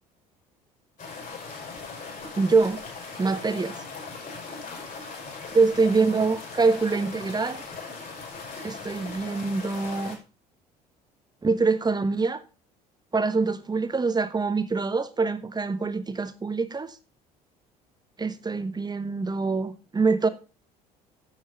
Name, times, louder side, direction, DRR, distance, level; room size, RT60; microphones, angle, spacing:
sound 1, 1.0-10.2, left 4 dB, 40° left, 5.8 m, -39 dB
voice 1, 2.4-2.8 3.2-3.8 5.5-7.6 8.6-10.2 11.4-12.4 13.1-17.0 18.2-20.3, right 4 dB, 20° right, 1.3 m, -24 dB
10.5 x 7.1 x 5.6 m
figure-of-eight pair, 60°, 21 cm